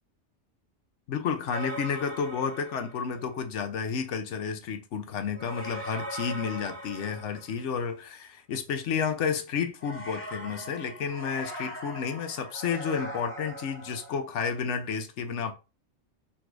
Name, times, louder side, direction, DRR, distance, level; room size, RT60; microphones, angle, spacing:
voice 1, 1.1-15.5, left 6 dB, 85° left, 1.0 m, -31 dB
sound 1, 1.5-3.2 5.3-7.9 9.8-14.2, equal, 10° left, 1.1 m, -40 dB
4.0 x 2.5 x 4.6 m
omnidirectional pair, 1.2 m